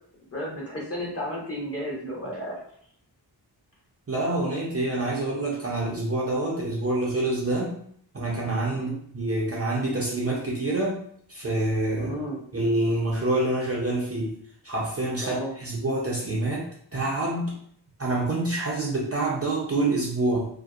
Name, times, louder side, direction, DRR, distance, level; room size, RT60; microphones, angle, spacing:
voice 1, 0.3-2.6 8.7-9.0 12.0-12.4 15.2-15.5, equal, 30° left, -4 dB, 0.9 m, -33 dB
voice 2, 4.1-7.7 8.1-11.0 11.3-12.1 12.5-14.3 14.6-17.6 18.0-20.5, right 2 dB, 35° right, -4 dB, 0.4 m, -27 dB
2.6 x 2.0 x 2.3 m, 0.64 s
wide cardioid pair, 90°, 47 cm